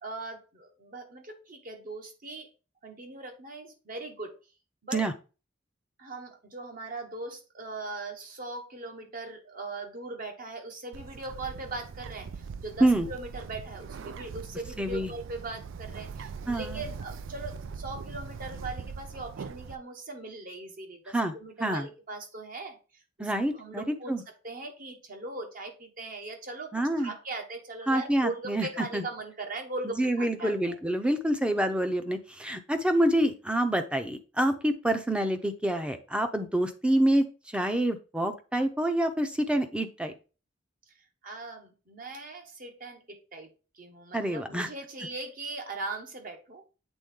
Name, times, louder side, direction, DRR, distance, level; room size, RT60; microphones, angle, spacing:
voice 1, 0.0-2.5 2.8-4.3 4.8-5.1 6.0-24.1 24.4-30.8 41.2-43.5 43.7-46.6, right 2 dB, 45° right, 4 dB, 1.3 m, -40 dB
Bird, 10.9-19.7, right 5 dB, 80° right, 0.4 m, -41 dB
voice 2, 14.8-15.1 16.5-16.8 21.1-21.3 21.6-21.9 23.2-24.2 26.7-27.1 27.9-28.7 28.9-29.0 29.8-40.1 44.1-44.7, right 1 dB, 5° right, 8 dB, 0.7 m, -27 dB
7.9 x 3.7 x 3.7 m, 0.33 s
head